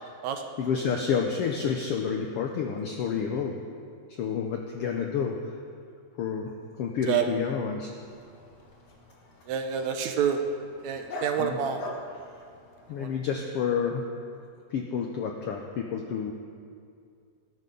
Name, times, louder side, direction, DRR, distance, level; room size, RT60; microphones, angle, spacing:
voice 1, 0.6-3.6 4.2-5.4 6.2-7.9 11.4-11.6 12.9-14.1 14.7-16.3, left 6 dB, 80° left, 2 dB, 1.3 m, -29 dB
Dog, 8.0-13.3, left 2 dB, 50° left, 1.2 m, -44 dB
voice 2, 9.5-10.4 10.8-11.8 13.0-13.1, right 8 dB, 75° right, 5 dB, 1.9 m, -27 dB
19.0 x 11.0 x 3.9 m, 2.3 s
omnidirectional pair, 3.6 m